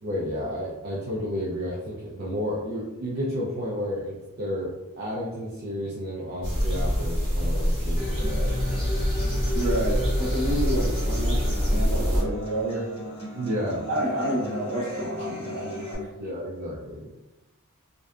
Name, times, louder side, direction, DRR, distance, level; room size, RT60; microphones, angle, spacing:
voice 1, 0.0-8.9 13.3-13.8 16.2-17.1, equal, 45° right, -6 dB, 0.4 m, -32 dB
sound 1, 6.4-12.2, equal, 25° right, 1.5 m, -25 dB
Human voice / Acoustic guitar, 8.0-15.9, left 1 dB, 25° left, 0.9 m, -37 dB
voice 2, 9.5-12.8 13.9-16.1, right 1 dB, 65° right, -6 dB, 0.9 m, -29 dB
2.6 x 2.2 x 2.3 m, 1.0 s
head